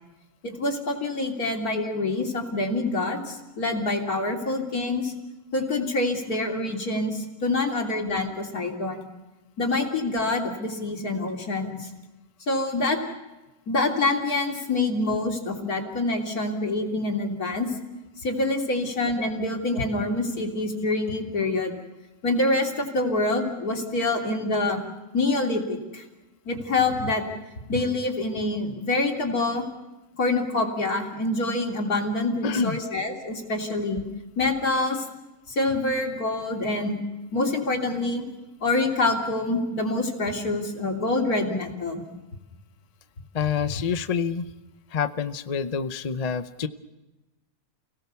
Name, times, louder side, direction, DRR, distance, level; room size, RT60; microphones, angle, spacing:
voice 1, 0.4-5.1 5.5-9.1 9.6-11.9 12.5-13.0 13.7-17.7 18.2-21.7 22.2-24.8 25.1-26.0 26.5-27.2 27.7-29.7 30.2-34.0 34.4-35.0 35.5-37.0 37.3-38.2 38.6-42.0, left 2 dB, 80° left, 1 dB, 3.7 m, -26 dB
voice 2, 32.4-32.8 43.3-44.5 44.9-46.7, left 6 dB, 35° left, 10 dB, 0.7 m, -27 dB
30.0 x 18.0 x 7.0 m, 1.1 s
omnidirectional pair, 1.6 m